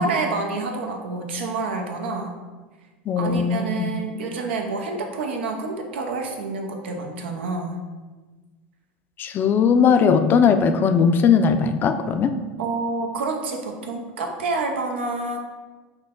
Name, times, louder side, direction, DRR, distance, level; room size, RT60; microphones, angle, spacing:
voice 1, 0.0-2.4 3.2-7.8 12.6-15.4, right 3 dB, 85° right, 3 dB, 0.7 m, -28 dB
voice 2, 3.1-3.9 9.2-12.3, left 6 dB, 35° left, 8 dB, 0.4 m, -19 dB
6.2 x 2.2 x 3.7 m, 1.3 s
supercardioid pair, 105°, 6 cm